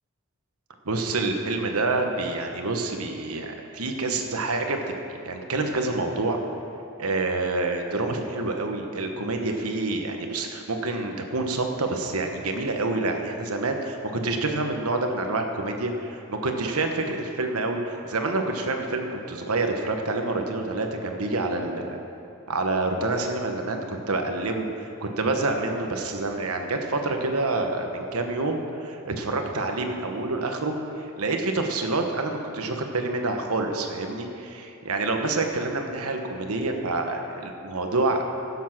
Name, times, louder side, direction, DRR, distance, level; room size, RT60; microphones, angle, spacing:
voice 1, 0.8-4.8 5.2-6.4 7.0-22.0 22.5-38.2, right 2 dB, 75° right, 4 dB, 1.2 m, -27 dB
16.5 x 7.3 x 6.1 m, 2.7 s
head